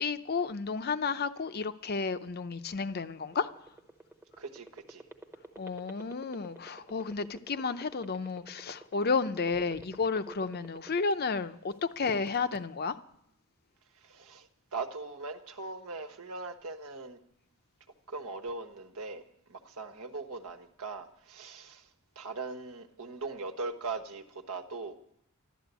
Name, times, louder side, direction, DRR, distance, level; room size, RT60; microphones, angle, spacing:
voice 1, 0.0-3.5 5.6-12.9, left 4 dB, 45° left, 0.6 m, -32 dB
sound 1, 3.2-11.4 11.8-12.6, right 2 dB, 10° right, 0.9 m, -48 dB
voice 2, 4.4-5.0 13.9-17.2 18.1-19.2 19.5-21.9 22.1-25.0, right 3 dB, 80° right, 1.3 m, -40 dB
12.5 x 12.0 x 8.2 m
head